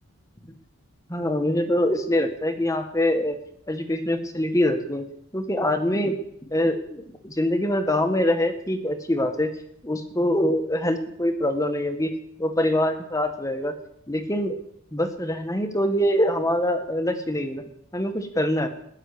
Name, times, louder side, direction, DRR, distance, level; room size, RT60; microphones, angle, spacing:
voice 1, 1.1-3.4 3.7-5.1 5.3-6.2 6.5-9.5 9.8-12.1 12.4-13.7 14.1-14.6 14.9-17.6 17.9-18.7, left 1 dB, 15° left, 7 dB, 1.5 m, -24 dB
19.5 x 6.6 x 9.7 m, 0.70 s
head